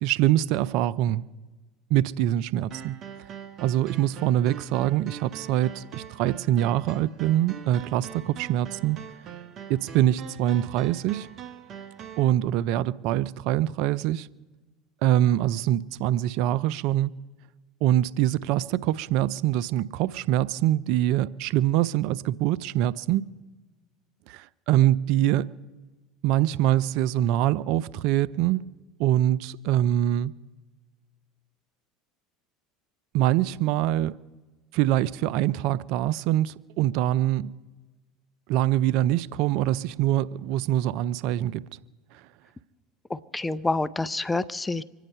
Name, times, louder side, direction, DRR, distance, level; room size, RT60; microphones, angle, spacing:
voice 1, 0.0-1.3 1.9-3.0 3.6-9.0 9.7-11.3 12.2-14.3 15.0-17.2 17.8-23.3 24.3-25.5 26.2-28.6 29.0-30.4 33.1-34.2 34.7-37.5 38.5-41.7, right 13 dB, 65° right, 0.4 m, -24 dB
sound 1, 2.7-12.3, right 9 dB, 45° right, 1.1 m, -43 dB
voice 2, 43.1-44.8, left 2 dB, 15° left, 0.6 m, -28 dB
25.0 x 9.2 x 5.5 m
hypercardioid pair, 80°, 0 cm